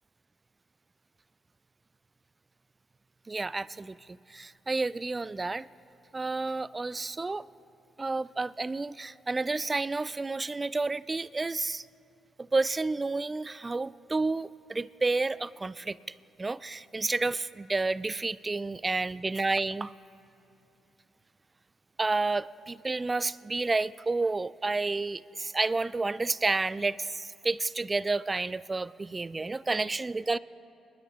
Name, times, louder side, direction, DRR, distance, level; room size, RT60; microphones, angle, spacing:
voice 1, 3.3-5.7 6.1-7.5 8.0-11.9 12.4-16.0 16.4-19.9 22.0-30.4, right 3 dB, 30° right, 20 dB, 0.3 m, -30 dB
25.0 x 11.0 x 3.7 m, 2.8 s
hypercardioid pair, 45°, 0 cm